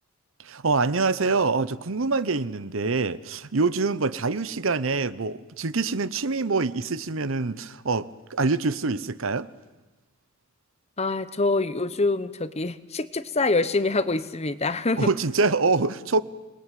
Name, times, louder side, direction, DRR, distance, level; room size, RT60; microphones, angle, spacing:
voice 1, 0.4-9.5 15.0-16.2, right 3 dB, 65° right, 16 dB, 0.9 m, -25 dB
voice 2, 11.0-15.1, left 3 dB, 30° left, 14 dB, 0.9 m, -25 dB
27.0 x 21.0 x 9.2 m, 1.2 s
head